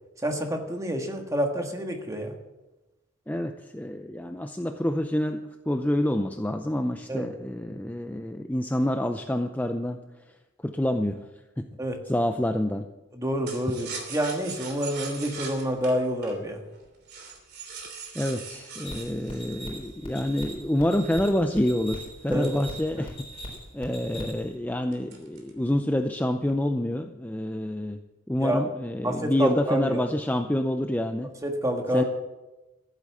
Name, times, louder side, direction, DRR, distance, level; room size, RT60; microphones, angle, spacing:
voice 1, 0.2-2.3 7.1-7.3 11.8-12.0 13.1-16.6 22.3-22.5 28.4-28.6 29.0-30.0 31.4-32.0, equal, 15° right, 3 dB, 1.6 m, -28 dB
voice 2, 3.3-10.0 10.6-11.2 11.6-11.7 12.1-12.9 18.1-23.3 23.7-28.0 28.3-31.3 31.9-32.0, left 1 dB, 10° left, 6 dB, 0.5 m, -27 dB
sound 1, 13.5-20.4 20.9-23.4 23.7-23.8 24.1-24.5 24.9-25.6 25.9-26.5, right 4 dB, 55° right, 3.1 m, -41 dB
sound 2, 18.8-24.6, right 1 dB, 30° left, 3.9 m, -41 dB
15.0 x 8.3 x 7.4 m, 1.1 s
head